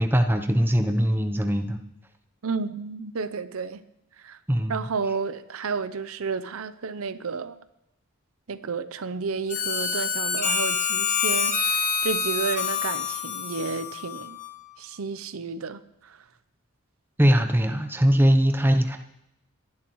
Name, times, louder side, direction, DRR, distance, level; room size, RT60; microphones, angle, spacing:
voice 1, 0.0-1.8 4.5-4.8 17.2-19.0, equal, 10° right, 0.7 m, -21 dB
voice 2, 2.4-3.8 4.2-4.4 4.7-7.6 8.5-14.4 14.8-16.2, right 4 dB, 75° right, 0.6 m, -31 dB
Harmonica, 9.5-14.7, left 6 dB, 35° left, 1.2 m, -27 dB
28.5 x 11.0 x 3.1 m
head